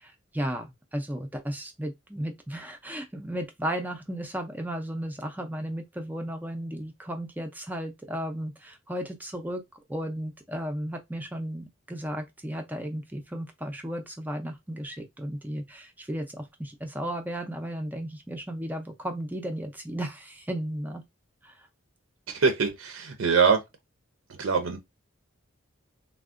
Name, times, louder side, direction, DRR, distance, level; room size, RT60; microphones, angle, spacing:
voice 1, 0.0-9.6 9.9-21.0 21.4-21.7, equal, 10° right, 0.4 m, -34 dB
voice 2, 22.3-23.6 24.3-24.8, right 5 dB, 75° right, 0.5 m, -23 dB
3.5 x 2.1 x 2.4 m
head